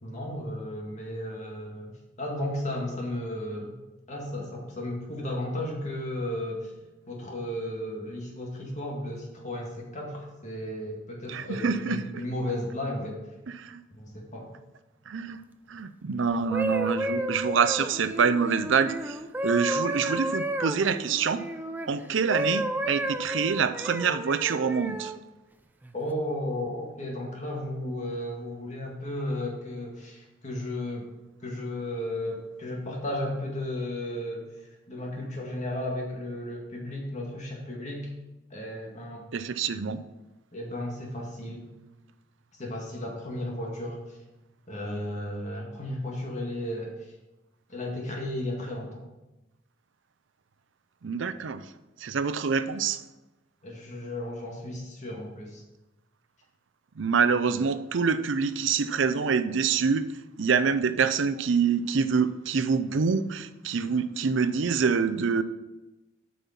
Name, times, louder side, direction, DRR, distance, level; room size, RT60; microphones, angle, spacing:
voice 1, 0.0-3.7 4.1-6.7 7.1-13.2 14.0-14.5 25.9-31.1 31.4-34.5 34.9-38.1 38.5-39.2 40.5-41.6 42.6-44.2 44.7-47.1 47.7-49.0 53.6-55.6, left 1 dB, 35° left, 2.0 m, -34 dB
voice 2, 11.3-12.2 13.5-13.8 15.1-15.4 15.7-19.2 19.4-21.4 21.9-25.1 39.3-40.0 51.0-51.7 52.0-53.0 57.0-60.1 60.4-65.4, right 5 dB, 65° right, 0.5 m, -26 dB
sound 1, 16.3-21.9 22.3-25.2 25.8-26.1, right 1 dB, 10° right, 0.4 m, -32 dB
8.5 x 5.5 x 5.8 m
head